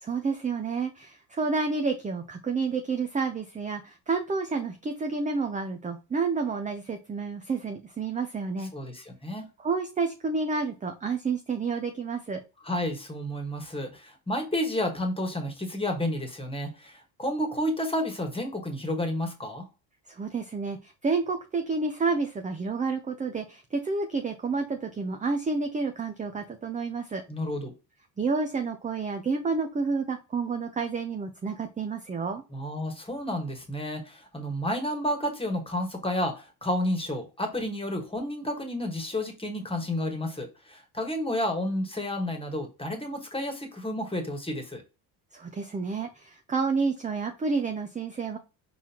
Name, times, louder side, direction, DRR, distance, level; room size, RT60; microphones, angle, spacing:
voice 1, 0.0-8.7 9.6-12.4 20.1-27.2 28.2-32.4 45.3-48.4, right 4 dB, 15° right, 0.5 m, -30 dB
voice 2, 8.6-9.4 12.6-19.7 27.3-27.7 32.5-44.8, left 1 dB, 10° left, 1.5 m, -31 dB
4.6 x 3.9 x 2.9 m
supercardioid pair, 85°, 45 cm